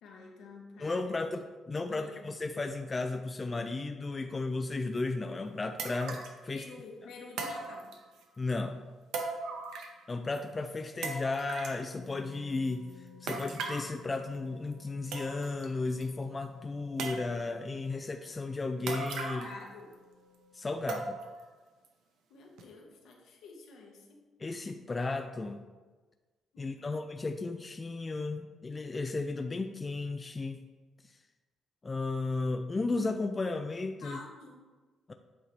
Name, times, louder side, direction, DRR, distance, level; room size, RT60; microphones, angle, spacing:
voice 1, 0.0-1.0 1.9-2.2 6.5-8.0 19.0-19.9 22.3-24.2 26.5-27.0 34.0-34.6, left 3 dB, 80° left, 0 dB, 1.1 m, -49 dB
voice 2, 0.8-6.7 8.4-8.8 10.1-12.9 13.2-19.5 20.5-21.2 24.4-25.6 26.6-30.6 31.8-34.2 35.1-35.2, left 3 dB, 25° left, 6 dB, 0.3 m, -34 dB
sound 1, 5.0-5.1 5.8-6.4 7.4-8.2 9.1-10.1 10.3-10.4 11.0-11.8 13.3-13.9 14.7-14.8 15.1-15.6 16.0-16.1 17.0-17.6 18.9-19.6 19.9-20.0 20.9-21.4 21.8-21.9 22.6-22.7, right 3 dB, 85° right, 0.7 m, -38 dB
sound 2, 11.9-21.1, left 6 dB, 55° left, 1.0 m, -56 dB
8.1 x 3.1 x 4.0 m, 1.3 s
cardioid pair, 90°, 0 cm